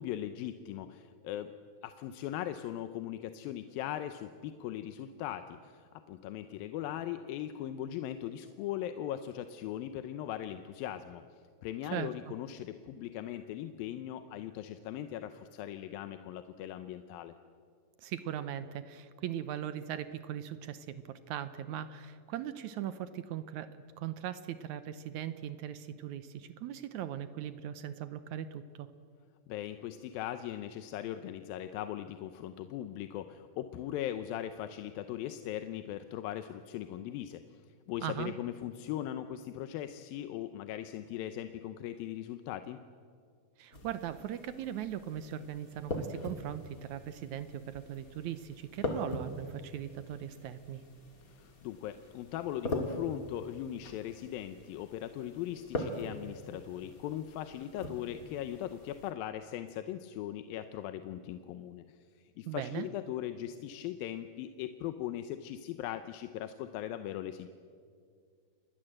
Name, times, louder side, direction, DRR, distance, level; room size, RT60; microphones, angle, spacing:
voice 1, 0.0-1.5 1.8-11.2 11.6-17.3 29.5-37.6 37.9-42.8 51.3-62.0 62.4-67.5, left 11 dB, 85° left, 9 dB, 2.6 m, -39 dB
voice 2, 18.0-28.9 38.0-38.3 43.6-50.8 62.5-62.9, right 10 dB, 70° right, 12 dB, 1.9 m, -39 dB
sound 1, 43.7-59.1, left 1 dB, 30° left, 2.2 m, -42 dB
28.5 x 21.0 x 7.8 m, 2.2 s
omnidirectional pair, 4.1 m